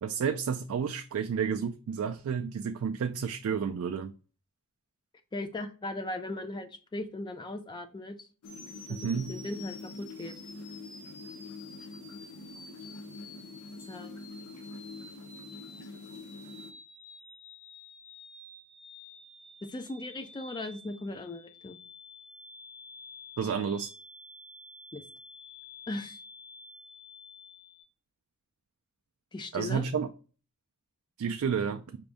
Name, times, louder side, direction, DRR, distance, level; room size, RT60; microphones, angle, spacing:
voice 1, 0.0-4.1 9.0-9.3 23.4-23.9 29.5-30.1 31.2-32.0, right 6 dB, 65° right, 6 dB, 0.3 m, -31 dB
voice 2, 5.3-8.3 8.9-9.0 9.3-10.3 13.9-14.2 19.7-21.8 24.9-25.0 25.9-26.2 29.3-29.9, left 2 dB, 20° left, 7 dB, 0.3 m, -38 dB
sound 1, 8.4-16.7, left 3 dB, 85° left, 0.6 m, -45 dB
sound 2, 8.4-27.8, left 3 dB, 65° left, 2.2 m, -50 dB
5.0 x 2.6 x 3.4 m, 0.36 s
head